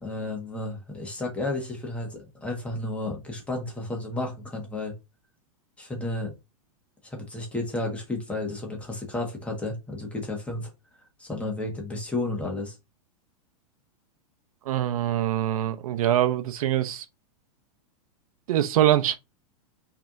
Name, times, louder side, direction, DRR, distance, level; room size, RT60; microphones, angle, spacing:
voice 1, 0.0-4.9 5.8-6.3 7.0-10.7 11.2-12.8, left 2 dB, 5° left, 1.5 m, -32 dB
voice 2, 14.7-17.0 18.5-19.1, right 12 dB, 70° right, 0.7 m, -23 dB
5.9 x 3.4 x 2.6 m
supercardioid pair, 155°, 19 cm